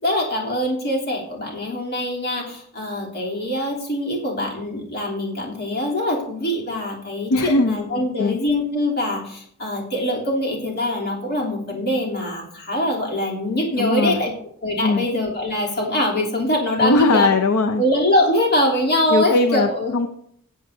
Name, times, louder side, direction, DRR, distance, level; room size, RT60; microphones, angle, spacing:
voice 1, 0.0-14.3 14.6-17.3 17.8-19.9, left 1 dB, 45° left, -3 dB, 3.1 m, -23 dB
voice 2, 7.3-8.4 13.8-14.3 14.8-15.1 16.8-17.8 19.1-20.1, left 2 dB, 70° left, 5 dB, 0.6 m, -20 dB
18.0 x 7.6 x 2.7 m, 0.67 s
head